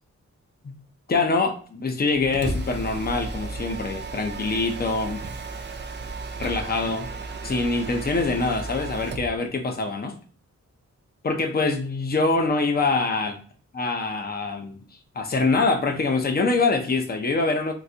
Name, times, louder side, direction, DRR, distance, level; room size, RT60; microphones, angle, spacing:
voice 1, 1.1-5.2 6.4-7.1 7.4-10.2 11.2-13.4 13.7-14.8 15.2-17.7, left 3 dB, 30° left, 0.6 m, -24 dB
Mechanisms, 2.1-9.3, right 3 dB, 35° right, 0.5 m, -34 dB
3.8 x 2.4 x 2.8 m
wide cardioid pair, 125°, 30 cm